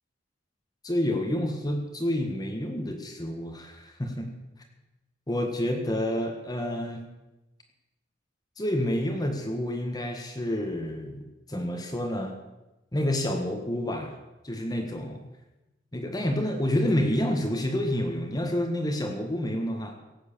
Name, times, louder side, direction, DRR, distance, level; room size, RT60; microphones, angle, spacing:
voice 1, 0.8-4.3 5.3-7.0 8.6-12.3 12.9-14.2 14.4-15.2 15.9-19.9, left 1 dB, 20° left, 3 dB, 1.5 m, -29 dB
17.5 x 8.2 x 6.8 m, 1.0 s
head